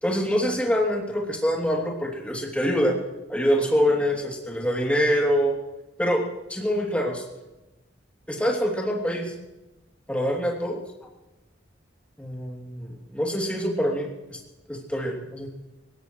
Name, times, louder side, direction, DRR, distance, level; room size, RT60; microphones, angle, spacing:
voice 1, 0.0-3.0 3.3-5.6 6.0-7.2 8.3-9.3 10.1-10.8 12.2-14.4 14.7-15.5, equal, 5° left, -1 dB, 2.9 m, -25 dB
21.0 x 18.0 x 3.2 m, 1.0 s
head